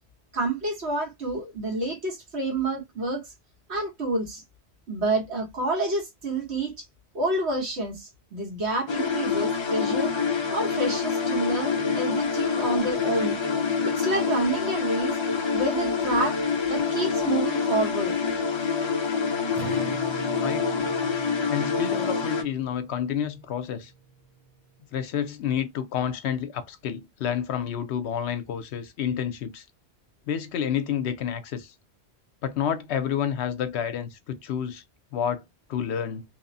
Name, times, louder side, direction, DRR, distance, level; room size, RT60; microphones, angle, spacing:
voice 1, 0.3-3.2 3.7-4.4 4.9-6.8 7.1-10.1 10.5-13.4 13.8-15.1 15.5-16.4 16.7-18.2, right 2 dB, 75° right, 1.4 m, -28 dB
sound 1, 8.9-22.4, left 5 dB, 50° left, 0.3 m, -26 dB
Acoustic guitar, 19.6-24.2, right 3 dB, ahead, 0.7 m, -41 dB
voice 2, 21.5-23.9 24.9-29.6 30.3-31.7 32.4-34.8 35.1-35.4 35.7-36.2, left 8 dB, 75° left, 0.9 m, -29 dB
2.9 x 2.0 x 2.6 m
omnidirectional pair, 1.1 m